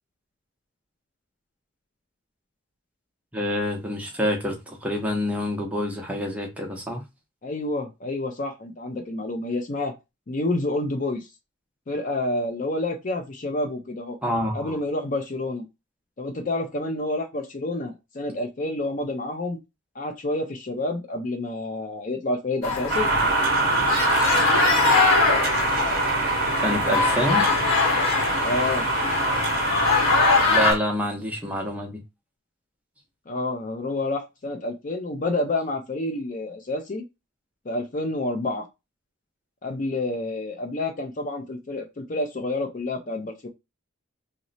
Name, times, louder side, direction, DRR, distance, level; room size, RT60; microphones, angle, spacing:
voice 1, 3.3-7.0 14.2-14.8 26.6-27.5 30.5-32.0, equal, 5° right, 0.6 m, -27 dB
voice 2, 7.4-9.9 10.3-11.3 11.9-14.2 14.5-15.6 16.2-19.6 20.0-23.1 28.4-28.9 33.3-37.0 37.7-38.6 39.6-43.5, left 2 dB, 40° left, 0.5 m, -28 dB
sound 1, 22.6-30.7, left 4 dB, 85° left, 0.9 m, -23 dB
sound 2, 22.9-30.7, right 3 dB, 45° right, 0.7 m, -24 dB
3.0 x 2.0 x 3.9 m
head